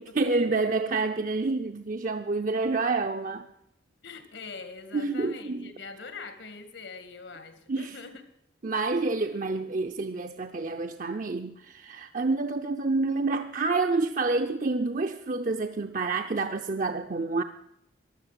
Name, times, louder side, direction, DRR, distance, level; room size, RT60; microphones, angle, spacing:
voice 1, 0.0-3.5 4.9-5.7 7.7-8.0 8.6-17.4, right 3 dB, 45° right, 6 dB, 0.6 m, -28 dB
voice 2, 4.0-8.2, left 4 dB, 75° left, 10 dB, 2.0 m, -43 dB
15.0 x 11.5 x 7.6 m, 0.79 s
head